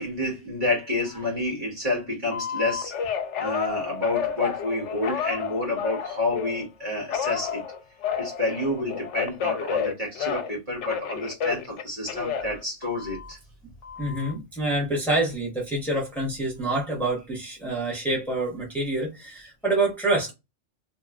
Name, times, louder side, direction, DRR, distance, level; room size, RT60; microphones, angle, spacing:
voice 1, 0.0-2.9 3.4-7.6 8.2-13.4, left 2 dB, 40° right, 1.5 m, -29 dB
Telephone, 2.3-6.6 7.1-10.6 10.8-13.3 13.8-14.3, left 7 dB, 80° left, 0.9 m, -31 dB
voice 2, 14.0-20.3, right 2 dB, ahead, 1.2 m, -27 dB
2.9 x 2.8 x 2.4 m
omnidirectional pair, 1.2 m